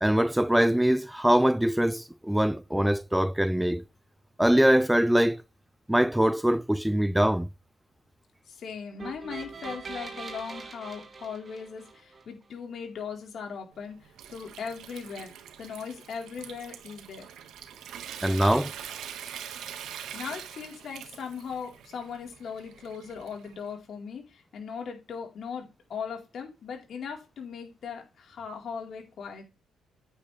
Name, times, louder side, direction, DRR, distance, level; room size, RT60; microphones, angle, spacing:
voice 1, 0.0-3.8 4.4-5.4 5.9-7.5 18.2-18.7, equal, 5° right, 0.4 m, -23 dB
voice 2, 8.5-15.3 15.6-17.3 20.1-29.4, left 6 dB, 60° left, 4.5 m, -39 dB
sound 1, 9.0-12.2, right 4 dB, 35° right, 3.6 m, -42 dB
Water tap faucet / Sink (filling or washing) / Trickle dribble, 13.7-23.7, right 9 dB, 80° right, 1.5 m, -43 dB
9.8 x 8.3 x 3.5 m
cardioid pair, 90°, 0 cm